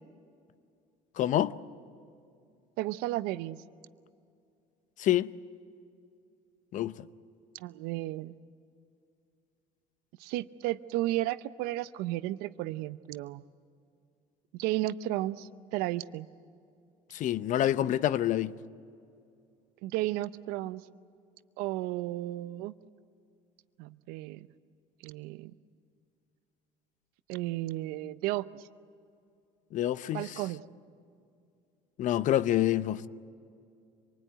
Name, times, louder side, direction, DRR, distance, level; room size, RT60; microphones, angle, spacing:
voice 1, 1.2-1.5 5.0-5.3 6.7-7.1 17.1-18.5 29.7-30.4 32.0-33.1, left 12 dB, 55° left, 0.8 m, -27 dB
voice 2, 2.8-3.6 7.5-8.3 10.2-13.4 14.6-16.3 19.8-20.8 21.6-22.7 23.8-24.5 25.0-25.5 27.3-28.7 30.1-30.6, right 16 dB, 75° right, 0.7 m, -33 dB
26.0 x 20.0 x 9.2 m
supercardioid pair, 95°, 16 cm